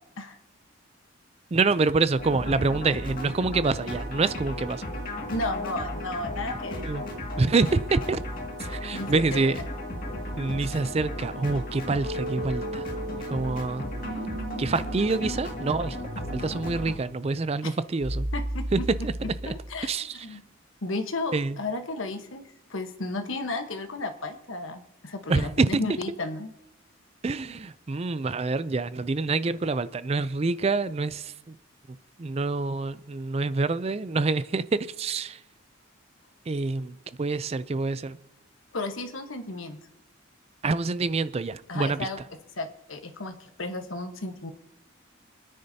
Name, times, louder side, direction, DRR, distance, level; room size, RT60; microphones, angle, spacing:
voice 1, 1.5-4.8 6.8-7.1 7.4-8.2 8.6-9.6 10.4-12.9 13.3-13.9 14.6-16.0 16.3-18.3 18.7-19.1 19.4-19.5 19.8-20.4 21.3-21.6 25.3-25.8 27.2-31.6 31.9-35.4 36.5-38.2 40.6-42.1, right 3 dB, 30° right, 0.4 m, -26 dB
sound 1, 2.2-16.9, left 1 dB, 45° left, 2.1 m, -35 dB
voice 2, 5.3-6.9 8.9-9.4 17.6-17.7 18.3-18.8 19.2-19.9 20.2-20.4 20.8-26.5 38.7-39.8 41.7-42.2 42.6-44.5, left 2 dB, 75° left, 1.2 m, -33 dB
sound 2, 12.0-19.9, right 1 dB, 70° right, 1.8 m, -36 dB
28.5 x 10.0 x 2.8 m
head